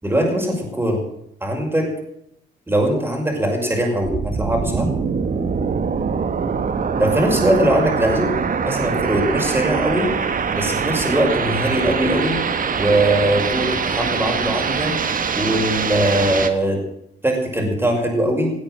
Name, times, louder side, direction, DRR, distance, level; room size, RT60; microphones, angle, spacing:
voice 1, 0.0-1.0 1.4-1.9 2.7-4.9 7.0-8.4 8.6-10.1 10.5-12.4 12.8-15.0 15.4-16.8 17.2-18.5, right 1 dB, 10° right, 1 dB, 5.7 m, -20 dB
sound 1, 4.0-16.5, right 5 dB, 45° right, 1.5 m, -23 dB
18.0 x 8.7 x 7.6 m, 0.74 s
cardioid pair, 90°, 20 cm